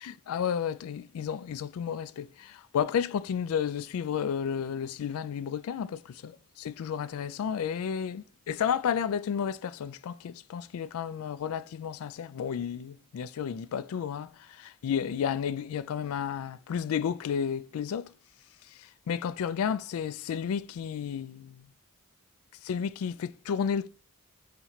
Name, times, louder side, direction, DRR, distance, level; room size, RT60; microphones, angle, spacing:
voice 1, 0.0-18.1 18.7-21.7 22.6-23.9, left 7 dB, 80° left, 0.3 m, -32 dB
4.0 x 3.0 x 4.2 m
head